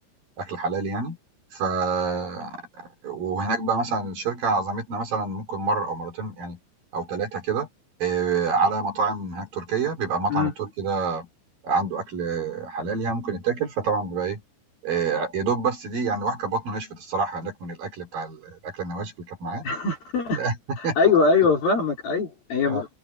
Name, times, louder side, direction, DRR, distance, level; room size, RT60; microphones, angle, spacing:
voice 1, 0.4-1.2 1.5-6.6 6.9-7.7 8.0-11.3 11.6-14.4 14.8-19.6 20.4-21.0 22.6-22.8, right 4 dB, 50° right, 4.5 m, -27 dB
voice 2, 19.6-20.4 20.8-22.9, left 4 dB, 45° left, 6.2 m, -22 dB
omnidirectional pair, 5.8 m